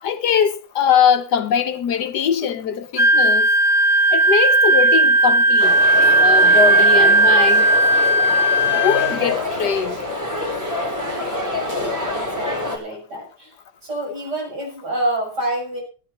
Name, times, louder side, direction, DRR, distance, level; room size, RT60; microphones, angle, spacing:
voice 1, 0.0-3.5 4.1-5.8 6.2-7.7 8.7-10.0, left 7 dB, 70° left, 1.5 m, -21 dB
Wind instrument woodwind instrument, 3.0-9.2, right 2 dB, 25° right, 1.5 m, -15 dB
sound 1, 5.6-12.8, left 2 dB, 10° right, 4.2 m, -26 dB
voice 2, 11.3-13.5 13.8-15.8, right 1 dB, 70° right, 7.7 m, -28 dB
15.0 x 9.3 x 5.8 m
omnidirectional pair, 1.9 m